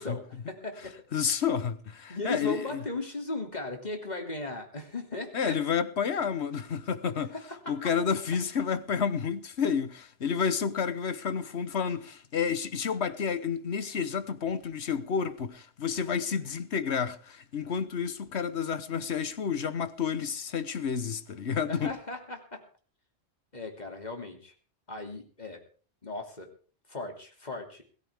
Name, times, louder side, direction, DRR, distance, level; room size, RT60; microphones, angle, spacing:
voice 1, 0.0-0.9 2.1-5.6 7.3-7.8 21.7-22.6 23.5-24.5 24.9-25.6 26.0-26.5 26.9-27.8, left 2 dB, 40° left, 3.0 m, -37 dB
voice 2, 1.1-2.8 5.3-7.3 7.7-21.9, left 6 dB, 75° left, 1.4 m, -30 dB
21.0 x 14.0 x 3.6 m
omnidirectional pair, 1.1 m